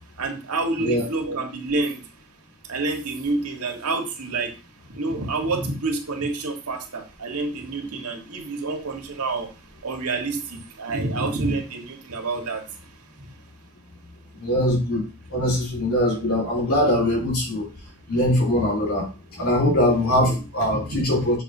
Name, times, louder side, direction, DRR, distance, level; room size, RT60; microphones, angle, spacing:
voice 1, 0.2-2.0 2.7-4.5 4.9-9.5 9.8-12.6 20.2-20.4 20.9-21.3, right 3 dB, 85° right, 4 dB, 1.4 m, -28 dB
voice 2, 14.4-15.0 15.3-17.7 18.1-19.1 19.4-21.4, left 1 dB, 85° left, -4 dB, 3.2 m, -22 dB
6.8 x 2.7 x 5.2 m, 0.30 s
head